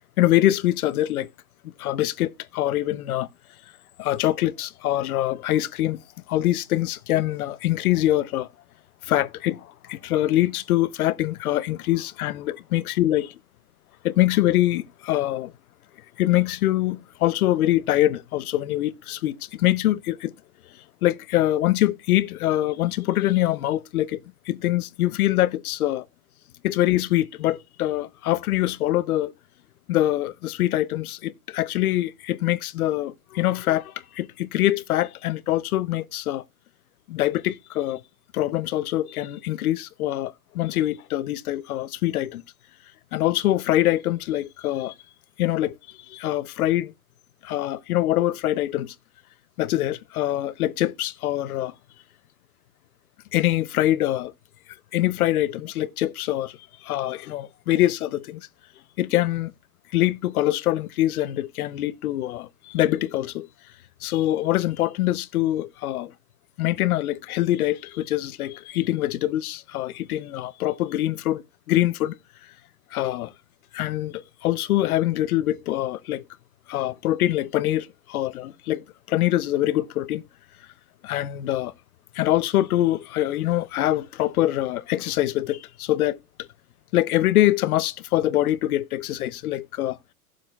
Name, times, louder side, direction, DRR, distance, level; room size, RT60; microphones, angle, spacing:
voice 1, 0.2-1.3 1.8-3.3 4.0-6.0 6.3-8.5 9.0-13.3 14.0-15.5 16.2-20.3 21.0-24.2 24.5-26.1 26.6-29.3 29.9-36.4 37.1-38.0 38.3-42.4 43.1-44.9 45.4-46.9 47.4-48.9 49.6-51.7 53.3-54.3 54.9-58.5 59.0-59.5 59.9-63.5 64.0-66.1 66.6-72.2 72.9-73.3 73.7-76.2 76.7-80.2 81.0-81.7 82.1-86.5 86.9-90.0, left 14 dB, 80° left, 0.7 m, -24 dB
16.5 x 7.4 x 2.3 m
supercardioid pair, 155°, 43 cm